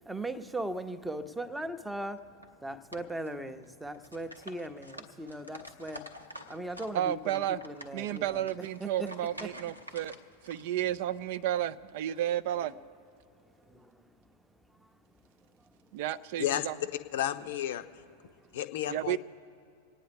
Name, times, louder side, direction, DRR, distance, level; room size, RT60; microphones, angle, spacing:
voice 1, 0.0-9.1 9.4-9.5 13.3-16.0 18.3-18.6, right 1 dB, 5° right, 10 dB, 0.7 m, -40 dB
sound 1, 2.2-2.5 2.9-3.6 3.9-7.0 7.2-10.6, equal, 90° right, 0.8 m, -48 dB
voice 2, 6.9-7.6 7.9-10.1 10.4-12.7 15.9-16.8 18.9-19.2, right 12 dB, 50° right, 15 dB, 0.3 m, -32 dB
voice 3, 17.1-17.8 18.5-19.2, left 11 dB, 55° left, 10 dB, 0.6 m, -31 dB
27.5 x 9.4 x 3.4 m, 2.5 s
figure-of-eight pair, 90°, 0 cm